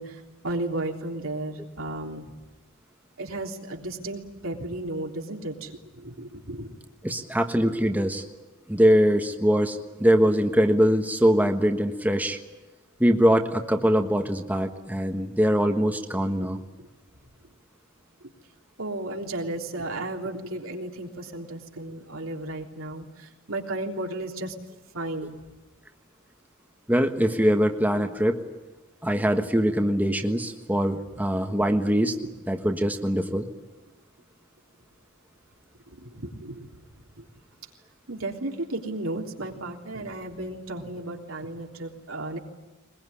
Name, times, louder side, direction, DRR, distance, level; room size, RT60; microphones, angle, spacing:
voice 1, 0.0-2.3 3.2-6.7 16.4-16.5 18.8-24.5 24.9-25.4 36.0-36.7 37.2-37.3 38.1-42.4, right 2 dB, 80° right, 1 dB, 3.5 m, -34 dB
voice 2, 7.0-8.2 8.7-12.4 13.0-16.6 26.9-28.4 29.0-32.1 32.5-33.5, equal, 10° right, 4 dB, 1.4 m, -22 dB
22.0 x 21.5 x 9.9 m, 1.1 s
head